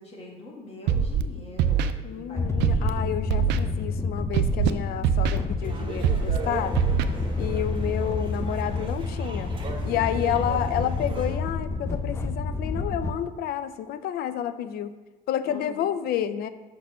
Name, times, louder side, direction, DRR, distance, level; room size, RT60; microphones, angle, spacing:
voice 1, 0.0-3.1 10.3-10.4 15.5-15.9, left 1 dB, 35° left, -2 dB, 2.0 m, -44 dB
Scratching (performance technique), 0.9-1.2 1.6-1.9 2.6-2.9 3.3-3.6 4.3-4.7 5.0-5.4 6.0-6.4 6.7-7.0, right 9 dB, 85° right, 0.4 m, -22 dB
voice 2, 2.0-6.8 7.4-9.5 9.8-14.9 15.3-16.5, left 10 dB, 65° left, 12 dB, 0.5 m, -30 dB
sound 1, 2.3-13.1, left 3 dB, 15° left, 0.5 m, -29 dB
sound 2, 5.6-11.4, right 4 dB, 30° right, 1.1 m, -38 dB
5.7 x 4.3 x 6.1 m, 1.2 s
cardioid pair, 110°, 17 cm